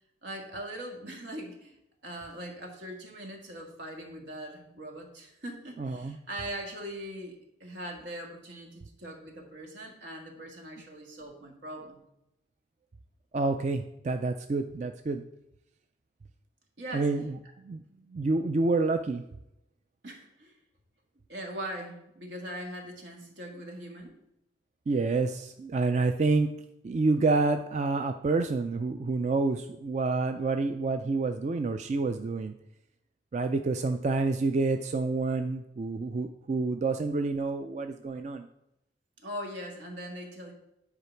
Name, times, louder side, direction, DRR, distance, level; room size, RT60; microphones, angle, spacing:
voice 1, 0.2-1.8 2.0-7.4 7.6-12.0 16.8-17.1 20.0-20.5 21.3-24.2 39.2-40.5, right 1 dB, 80° right, 1 dB, 1.8 m, -41 dB
voice 2, 5.8-6.2 13.3-15.2 16.9-17.4 17.6-17.8 18.1-19.2 24.9-26.5 26.8-32.5 33.3-38.5, right 3 dB, 40° right, 7 dB, 0.3 m, -28 dB
9.8 x 4.9 x 4.5 m, 0.84 s
head